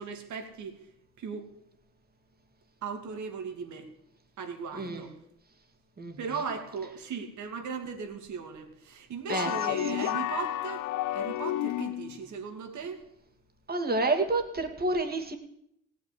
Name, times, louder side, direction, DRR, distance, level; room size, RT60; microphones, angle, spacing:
voice 1, 0.0-1.5 2.8-3.9 4.4-5.2 6.1-13.0, right 5 dB, 70° right, 5 dB, 2.5 m, -38 dB
sound 1, 9.3-12.2, left 14 dB, 85° left, 0.5 m, -31 dB
voice 2, 9.3-9.8 13.7-15.4, right 2 dB, 30° right, 4 dB, 2.4 m, -29 dB
17.0 x 6.3 x 9.9 m, 0.76 s
cardioid pair, 90°, 30 cm